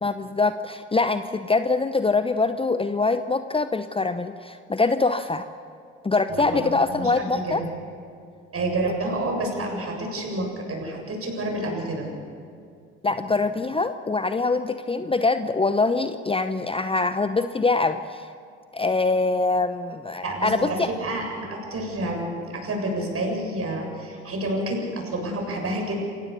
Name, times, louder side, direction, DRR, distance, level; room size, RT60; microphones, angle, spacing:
voice 1, 0.0-5.5 6.0-7.6 13.0-18.3 18.7-20.9, left 3 dB, 15° left, 10 dB, 0.8 m, -24 dB
voice 2, 6.3-7.7 8.5-12.1 20.2-26.0, right 1 dB, 40° right, 1 dB, 7.5 m, -29 dB
28.0 x 16.0 x 7.1 m, 2.4 s
hypercardioid pair, 50°, 34 cm